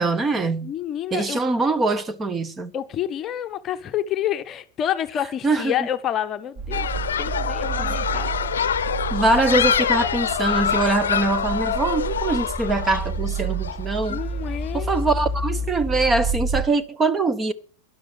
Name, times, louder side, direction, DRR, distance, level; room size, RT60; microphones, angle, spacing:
voice 1, 0.0-0.7 1.1-2.7 5.4-5.7 7.8-8.0 9.1-14.2 14.7-17.5, right 3 dB, 15° right, 1.1 m, -23 dB
voice 2, 0.6-1.4 2.7-6.9 7.2-8.5 14.1-14.9, left 10 dB, 30° left, 0.9 m, -28 dB
sound 1, 6.6-16.6, right 4 dB, 30° right, 3.6 m, -30 dB
sound 2, 6.7-14.7, left 8 dB, 65° left, 0.8 m, -25 dB
11.5 x 11.5 x 7.9 m
figure-of-eight pair, 90°, 0 cm